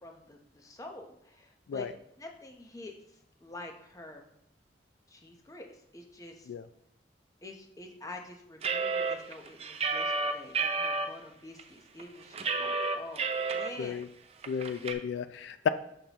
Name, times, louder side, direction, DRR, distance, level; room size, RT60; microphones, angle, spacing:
voice 1, 0.0-1.9 2.2-4.3 5.1-6.5 7.4-14.0, left 2 dB, 20° left, 3 dB, 0.8 m, -47 dB
sound 1, 8.6-11.1 11.6-11.7 12.0-13.7 14.0-14.1 14.4-14.9, right 4 dB, 35° right, 0.5 m, -30 dB
voice 2, 14.5-15.7, left 7 dB, 85° left, 12 dB, 0.3 m, -32 dB
6.9 x 5.9 x 2.9 m, 0.76 s
head